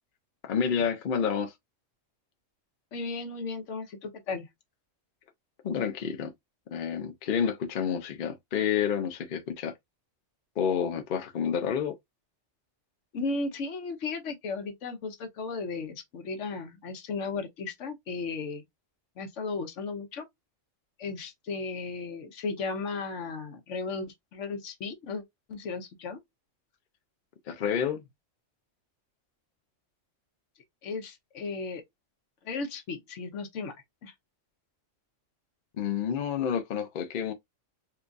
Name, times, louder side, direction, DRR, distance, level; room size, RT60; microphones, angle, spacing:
voice 1, 0.4-1.5 5.6-6.3 6.7-9.7 10.6-12.0 27.5-28.0 35.8-37.3, left 7 dB, 55° left, 0.6 m, -29 dB
voice 2, 2.9-4.5 13.1-18.6 19.2-20.3 21.0-25.2 25.5-26.2 30.8-31.8 32.4-33.8 34.0-34.1, left 4 dB, 70° left, 1.1 m, -35 dB
4.5 x 2.3 x 2.5 m
omnidirectional pair, 1.3 m